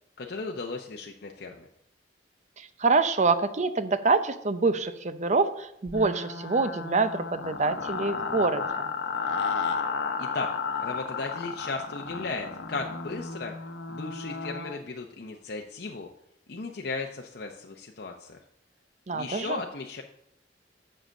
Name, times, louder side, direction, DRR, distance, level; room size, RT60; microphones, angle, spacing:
voice 1, 0.2-1.7 10.2-10.5 10.8-13.5 13.9-16.1 16.5-18.4 19.1-20.0, left 3 dB, 60° left, 2 dB, 0.7 m, -36 dB
voice 2, 2.6-8.9 19.1-19.6, right 4 dB, 40° right, 11 dB, 0.6 m, -26 dB
sound 1, 5.9-14.8, left 5 dB, 85° left, 0.9 m, -33 dB
7.6 x 6.6 x 6.3 m, 0.78 s
head